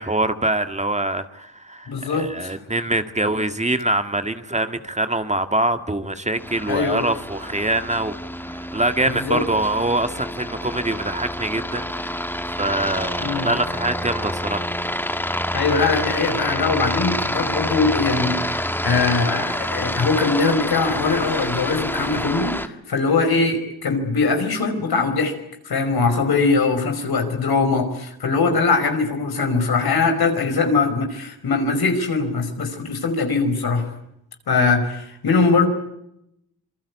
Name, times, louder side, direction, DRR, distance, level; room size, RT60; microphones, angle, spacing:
voice 1, 0.0-8.2 8.5-12.2 12.6-14.7, right 2 dB, 20° right, 9 dB, 1.9 m, -24 dB
voice 2, 1.9-2.5 6.7-7.0 9.0-9.4 13.2-13.5 15.5-25.3 25.7-33.9 34.5-35.7, left 4 dB, 75° left, 6 dB, 5.3 m, -21 dB
Aircraft, 6.4-22.7, left 1 dB, 5° left, 1.8 m, -27 dB
26.5 x 23.5 x 8.4 m, 0.81 s
cardioid pair, 75°, 37 cm